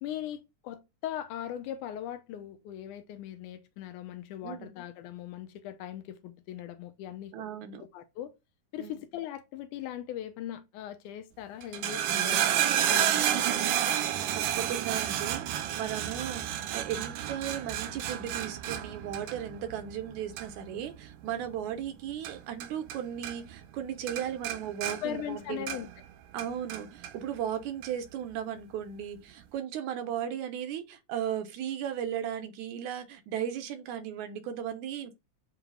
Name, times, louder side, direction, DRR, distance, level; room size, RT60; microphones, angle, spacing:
voice 1, 0.0-7.4 7.8-8.3 8.7-12.5 12.9-14.0 25.0-25.9, left 11 dB, 80° left, 2.1 m, -39 dB
voice 2, 4.4-4.7 7.3-7.8 8.8-9.0 14.6-25.7 26.3-35.1, right 9 dB, 75° right, 2.0 m, -36 dB
sound 1, 11.6-23.0 23.2-23.8 24.1-26.0 26.4-27.1 27.8-27.9, right 11 dB, 90° right, 2.3 m, -31 dB
8.0 x 3.1 x 3.8 m
omnidirectional pair, 3.8 m